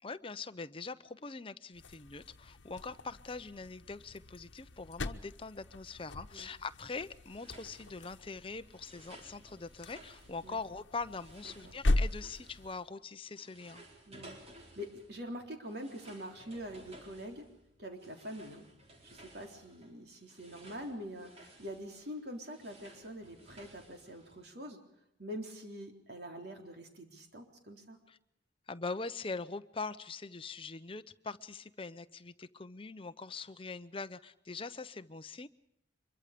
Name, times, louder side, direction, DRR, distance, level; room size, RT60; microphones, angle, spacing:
voice 1, 0.0-13.8 28.1-28.2 28.7-35.5, left 4 dB, 30° left, 12 dB, 0.7 m, -42 dB
sound 1, 1.7-12.9, left 2 dB, 85° left, 1.1 m, -39 dB
sound 2, 7.3-13.0 13.3-24.4, right 1 dB, 35° right, 4.2 m, -57 dB
voice 2, 14.1-17.4 17.8-18.6 19.0-24.8 25.2-28.0, equal, 60° right, 4 dB, 3.7 m, -45 dB
25.0 x 23.0 x 5.1 m, 0.81 s
head